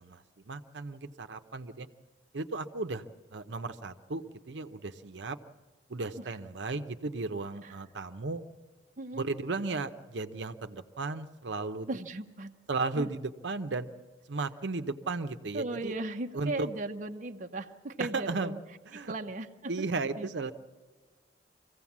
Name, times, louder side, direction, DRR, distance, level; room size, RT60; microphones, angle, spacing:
voice 1, 0.0-1.9 2.3-3.0 3.3-5.4 5.9-8.4 9.1-11.9 12.7-13.9 14.3-15.9 16.3-16.7 18.0-18.5 18.9-19.1 19.7-20.5, right 3 dB, 80° right, 8 dB, 0.8 m, -35 dB
voice 2, 11.9-12.5 13.0-13.1 15.5-18.6 18.9-19.7 20.2-20.5, right 2 dB, 45° right, 5 dB, 0.7 m, -37 dB
24.0 x 16.0 x 7.3 m, 1.4 s
head